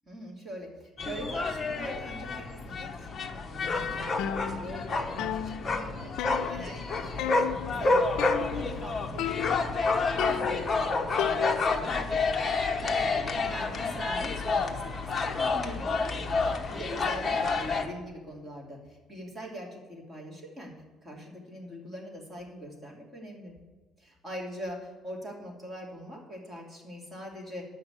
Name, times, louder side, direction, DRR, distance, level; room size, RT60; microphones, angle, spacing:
voice 1, 0.1-14.8 15.2-16.0 16.4-20.7 21.0-23.5 24.0-27.6, equal, 15° right, -2 dB, 2.7 m, -43 dB
sound 1, 1.0-17.9, left 3 dB, 25° left, 1.0 m, -29 dB
sound 2, 4.2-4.9 5.2-6.9 7.2-7.7 8.2-8.9 9.2-9.8 10.2-11.9, left 11 dB, 75° left, 0.4 m, -35 dB
9.8 x 5.9 x 8.2 m, 1.4 s
cardioid pair, 145°, 0 cm